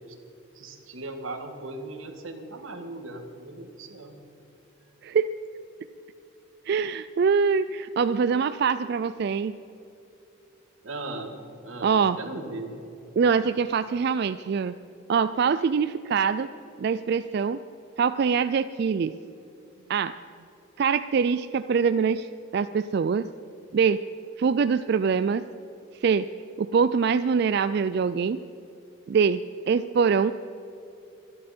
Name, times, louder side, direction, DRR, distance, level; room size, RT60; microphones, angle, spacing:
voice 1, 0.5-4.2 10.8-11.4 11.6-12.8, right 2 dB, 85° right, 5 dB, 1.9 m, -38 dB
voice 2, 6.7-9.5 11.8-12.2 13.2-14.7 15.1-16.5 16.8-17.6 18.0-19.1 19.9-20.1 20.8-22.3 22.5-23.3 23.7-24.0 24.4-25.4 26.0-26.3 26.6-28.4 29.1-29.4 29.7-30.3, right 6 dB, 55° right, 12 dB, 0.3 m, -23 dB
24.5 x 11.0 x 4.4 m, 2.9 s
head